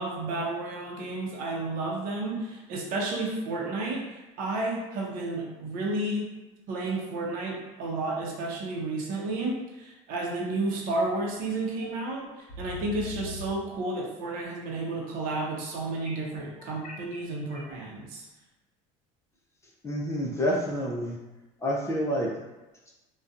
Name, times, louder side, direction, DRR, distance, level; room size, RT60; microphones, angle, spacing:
voice 1, 0.0-6.3 6.7-18.3, right 2 dB, 65° right, -2 dB, 0.7 m, -32 dB
sound 1, 11.8-11.9 12.5-13.5 16.0-17.7, left 2 dB, 55° left, 0.9 m, -41 dB
voice 2, 19.8-21.2 21.6-22.3, equal, 20° left, -3 dB, 0.5 m, -28 dB
2.5 x 2.2 x 2.4 m, 1.1 s
supercardioid pair, 95°, 16 cm